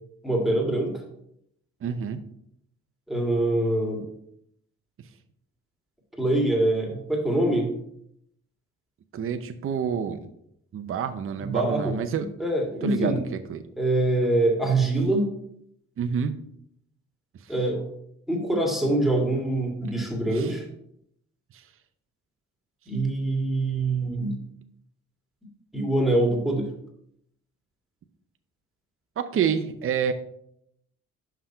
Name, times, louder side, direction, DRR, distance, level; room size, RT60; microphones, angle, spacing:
voice 1, 0.2-0.9 3.1-4.0 6.2-7.7 11.4-13.2 13.8-15.3 17.5-17.8 18.3-20.6 22.9-24.4 25.7-26.7, right 2 dB, ahead, 0 dB, 1.9 m, -24 dB
voice 2, 1.8-2.2 9.1-10.2 10.7-12.3 12.8-13.6 16.0-16.4 20.3-20.5 29.2-30.1, right 7 dB, 45° right, 8 dB, 0.7 m, -28 dB
5.8 x 5.7 x 4.4 m, 0.73 s
cardioid pair, 90°, 30 cm